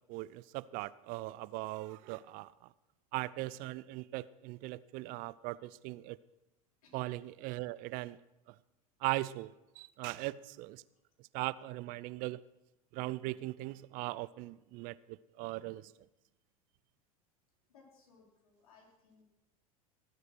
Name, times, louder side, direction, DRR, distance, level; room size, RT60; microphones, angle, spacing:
voice 1, 0.1-2.5 3.1-6.2 6.9-8.2 9.0-10.8 11.3-12.4 12.9-15.9, right 19 dB, 50° right, 19 dB, 0.5 m, -39 dB
voice 2, 17.7-19.2, left 4 dB, 75° left, 0 dB, 4.2 m, -63 dB
17.5 x 8.2 x 6.2 m, 0.95 s
hypercardioid pair, 90°, 18 cm